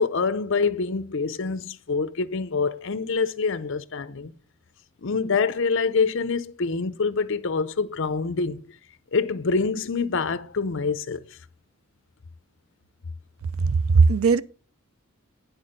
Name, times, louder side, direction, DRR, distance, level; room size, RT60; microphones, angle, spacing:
voice 1, 0.0-4.3 5.0-8.7 9.1-11.2, left 4 dB, 60° left, 0.7 m, -26 dB
voice 2, 13.6-14.4, right 4 dB, 80° right, 0.5 m, -18 dB
10.5 x 4.4 x 6.6 m
head